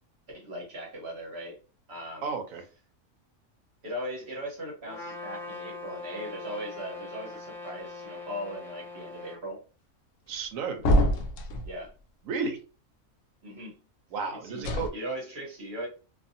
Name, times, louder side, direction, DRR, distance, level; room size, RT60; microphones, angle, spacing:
voice 1, 0.3-1.6 1.9-2.3 3.8-9.6 11.6-11.9 13.4-13.8 14.4-14.6 14.9-15.9, equal, 50° right, -2 dB, 1.1 m, -38 dB
voice 2, 2.2-2.6 10.3-10.9 12.2-12.6 14.1-14.9, right 4 dB, 75° right, 5 dB, 1.0 m, -32 dB
Trumpet, 4.8-9.4, left 3 dB, 5° left, 0.3 m, -42 dB
sound 1, 10.8-11.7 14.6-14.9, equal, 70° left, 0.9 m, -24 dB
2.7 x 2.6 x 2.5 m, 0.35 s
omnidirectional pair, 1.5 m